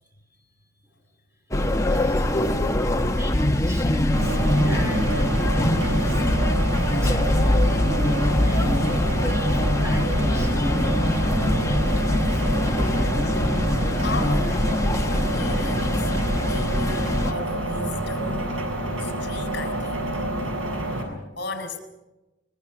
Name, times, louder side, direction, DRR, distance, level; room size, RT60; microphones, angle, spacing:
sound 1, 1.5-17.3, left 1 dB, 15° left, 1.1 m, -23 dB
voice 1, 1.6-2.6 3.0-6.2 6.6-7.6 8.3-10.6 11.8-12.5, equal, 15° right, 3 dB, 3.9 m, -40 dB
sound 2, 4.1-21.0, right 1 dB, 85° right, 7.6 m, -28 dB
voice 2, 14.0-14.7 15.0-16.1 16.4-18.6 19.0-20.2 21.4-21.8, left 3 dB, 55° left, 6 dB, 4.0 m, -35 dB
24.5 x 22.5 x 6.1 m, 1.0 s
head